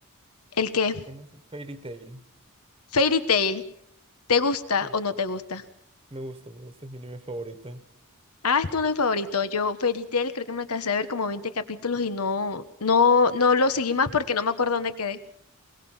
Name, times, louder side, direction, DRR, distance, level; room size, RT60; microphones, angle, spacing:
voice 1, 0.6-1.0 2.9-3.6 4.3-5.6 8.4-15.2, left 4 dB, 80° left, 11 dB, 1.4 m, -24 dB
voice 2, 1.1-2.2 4.8-4.9 6.1-7.9, right 1 dB, 25° right, 10 dB, 1.3 m, -39 dB
22.5 x 22.5 x 5.7 m, 0.70 s
head